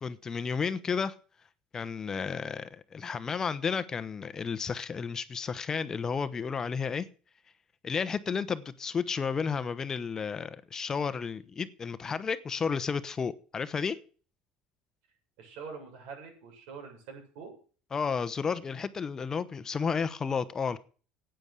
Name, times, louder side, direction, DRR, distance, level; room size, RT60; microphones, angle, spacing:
voice 1, 0.0-1.2 1.7-7.1 7.8-14.0 17.9-20.8, left 6 dB, 25° left, 13 dB, 0.9 m, -32 dB
voice 2, 15.4-17.6, right 5 dB, 80° right, 2 dB, 7.3 m, -45 dB
10.5 x 9.0 x 8.2 m, 0.40 s
cardioid pair, 135°, 2 cm